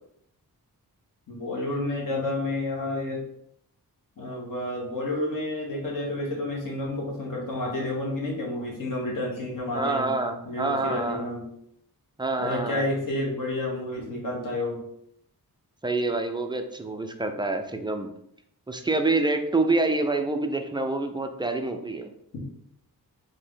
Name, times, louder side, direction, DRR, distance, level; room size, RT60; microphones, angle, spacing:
voice 1, 1.3-3.2 4.2-10.1 10.4-11.4 12.4-14.8, left 2 dB, 55° left, -2 dB, 1.4 m, -30 dB
voice 2, 9.7-11.3 12.2-12.9 15.8-18.1 18.7-22.1, right 2 dB, 15° right, 6 dB, 0.3 m, -27 dB
4.3 x 2.6 x 3.7 m, 0.74 s
wide cardioid pair, 130°, 38 cm